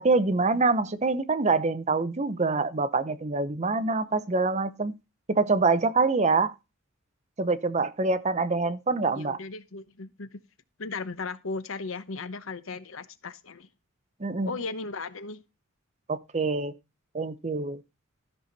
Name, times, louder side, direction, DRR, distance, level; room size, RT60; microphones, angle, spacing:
voice 1, 0.0-4.9 5.3-6.5 7.4-9.4 14.2-14.5 16.1-16.7 17.1-17.8, right 3 dB, 35° right, 0.7 m, -25 dB
voice 2, 9.1-10.4 10.8-13.7 14.5-15.4, left 4 dB, 70° left, 0.9 m, -36 dB
13.5 x 5.9 x 4.1 m
head